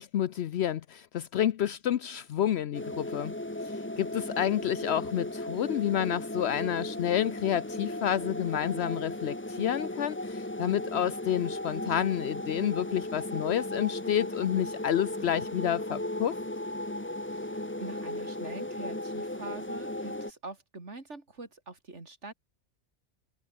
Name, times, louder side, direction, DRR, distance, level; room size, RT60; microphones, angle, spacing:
voice 1, 0.0-3.3 3.6-16.4, left 10 dB, 70° left, 0.9 m, -29 dB
sound 1, 2.7-20.3, left 1 dB, 10° left, 1.4 m, -36 dB
voice 2, 17.2-22.3, right 3 dB, 85° right, 3.8 m, -44 dB
omnidirectional pair, 1.2 m